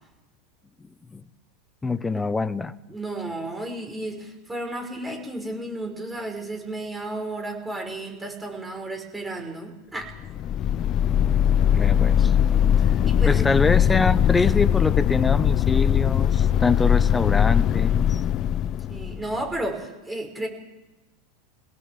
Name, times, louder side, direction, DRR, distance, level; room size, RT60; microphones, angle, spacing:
voice 1, 1.8-2.7 11.7-12.3 13.3-18.2, left 3 dB, 15° left, 15 dB, 1.2 m, -24 dB
voice 2, 2.9-10.1 13.0-13.5 18.9-20.5, right 1 dB, 15° right, 3 dB, 5.4 m, -33 dB
sound 1, 10.2-19.5, left 9 dB, 40° left, 0.7 m, -21 dB
24.0 x 17.5 x 7.6 m, 1.1 s
hypercardioid pair, 90°, 0 cm